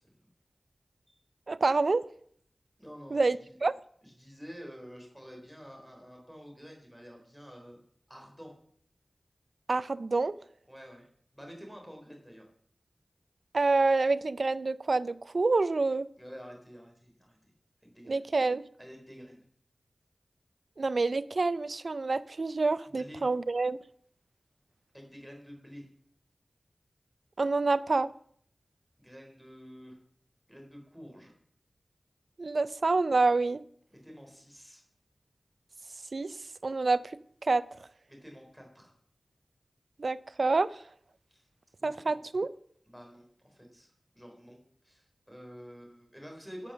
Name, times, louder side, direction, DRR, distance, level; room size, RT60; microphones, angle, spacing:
voice 1, 1.5-2.0 3.1-3.7 9.7-10.3 13.5-16.1 18.1-18.6 20.8-23.8 27.4-28.1 32.4-33.6 36.1-36.3 36.6-37.0 37.4-37.6 40.0-40.8 41.8-42.5, right 3 dB, 60° right, 0.5 m, -27 dB
voice 2, 2.8-3.5 4.0-7.8 8.1-8.6 10.7-11.1 11.3-12.5 16.1-17.4 17.8-18.2 18.8-19.4 22.9-23.3 24.9-25.9 29.0-30.0 30.5-31.3 33.9-34.8 38.1-38.9 41.3-41.5 41.8-42.2 42.9-46.7, equal, ahead, 4.0 m, -49 dB
12.5 x 6.9 x 6.3 m
wide cardioid pair, 70°, 0 cm